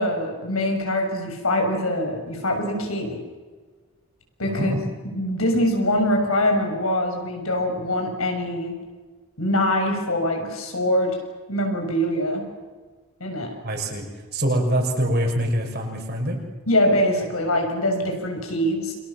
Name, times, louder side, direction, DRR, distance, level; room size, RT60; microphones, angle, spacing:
voice 1, 0.0-3.2 4.4-4.7 5.1-8.7 9.4-11.2 11.5-12.4 13.2-13.5 16.7-18.9, left 1 dB, 80° left, 3 dB, 7.0 m, -23 dB
voice 2, 4.4-4.8 13.6-14.0 14.3-16.4, right 1 dB, 50° right, 2 dB, 6.0 m, -24 dB
29.0 x 25.5 x 7.3 m, 1.4 s
head